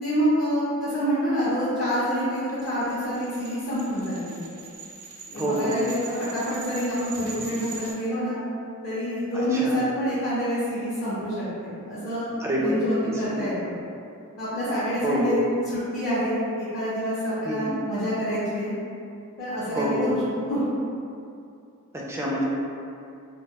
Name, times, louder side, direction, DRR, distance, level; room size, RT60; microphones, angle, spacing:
voice 1, 0.0-4.4 5.3-8.4 8.8-13.8 14.4-15.4 15.7-18.7 19.4-20.2 20.5-20.6, equal, 45° left, -12 dB, 0.6 m, -27 dB
sound 1, 2.6-7.9, right 4 dB, 85° right, 0.6 m, -42 dB
voice 2, 5.3-5.9 9.3-9.8 12.4-12.8 13.1-13.5 15.0-15.4 17.4-17.7 19.7-20.0 21.9-22.4, equal, 10° right, -4 dB, 0.3 m, -27 dB
2.5 x 2.2 x 2.8 m, 2.5 s
head